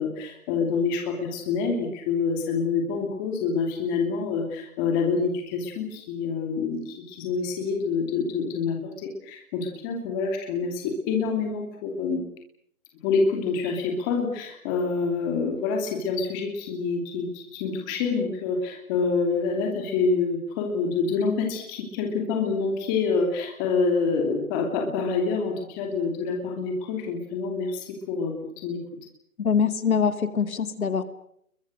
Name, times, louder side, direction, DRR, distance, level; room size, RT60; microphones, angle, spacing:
voice 1, 0.0-12.2 13.0-28.8, left 4 dB, 15° left, 2 dB, 2.7 m, -27 dB
voice 2, 29.4-31.0, left 6 dB, 75° left, 10 dB, 2.5 m, -24 dB
29.5 x 22.5 x 6.5 m, 0.70 s
hypercardioid pair, 170°, 43 cm